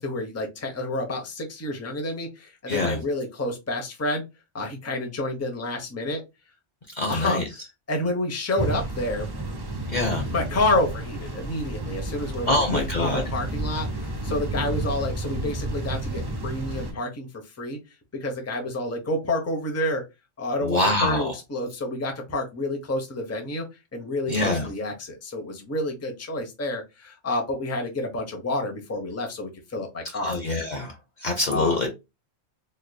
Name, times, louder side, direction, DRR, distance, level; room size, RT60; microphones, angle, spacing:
voice 1, 0.0-4.2 4.5-6.2 7.1-7.6 7.9-9.3 10.3-17.8 18.1-20.0 20.4-23.7 23.9-30.4 31.5-31.8, left 2 dB, 15° left, 0.7 m, -29 dB
voice 2, 2.7-3.0 7.0-7.4 9.9-10.2 12.5-13.2 20.6-21.3 24.3-24.7 30.2-30.9 31.2-31.9, left 2 dB, 45° left, 0.8 m, -24 dB
sound 1, 8.6-16.9, right 1 dB, 25° right, 0.6 m, -31 dB
3.9 x 3.1 x 2.2 m
omnidirectional pair, 1.2 m